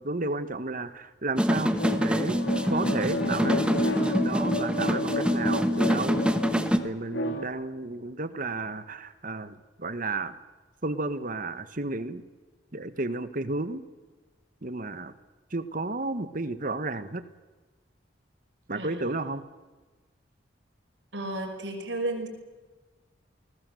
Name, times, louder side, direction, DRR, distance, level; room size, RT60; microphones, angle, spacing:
voice 1, 0.0-2.4 2.7-6.2 6.8-10.3 10.8-12.2 12.7-13.8 14.6-15.1 15.5-17.2 18.7-19.4, right 2 dB, 45° right, 12 dB, 1.5 m, -32 dB
sound 1, 1.4-6.8, equal, 5° right, 1.4 m, -26 dB
sound 2, 1.8-7.5, left 1 dB, 80° left, 2.9 m, -31 dB
voice 2, 18.7-19.2 21.1-22.3, right 2 dB, 75° right, 3 dB, 5.7 m, -33 dB
29.5 x 19.5 x 7.9 m, 1.3 s
head